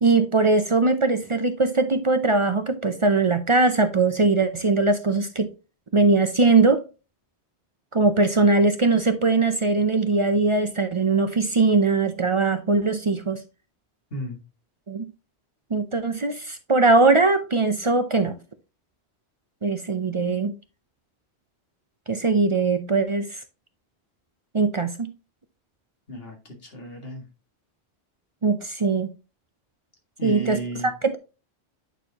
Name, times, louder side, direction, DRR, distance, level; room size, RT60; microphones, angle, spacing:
voice 1, 0.0-5.5 5.9-6.9 7.9-13.4 14.9-15.1 15.7-18.4 19.6-20.5 22.1-23.4 24.5-25.1 28.4-29.1 30.2-31.2, right 3 dB, 40° right, 0.5 m, -21 dB
voice 2, 26.1-27.3 30.2-31.2, right 1 dB, 60° left, 2.1 m, -34 dB
9.0 x 4.5 x 2.8 m
omnidirectional pair, 1.1 m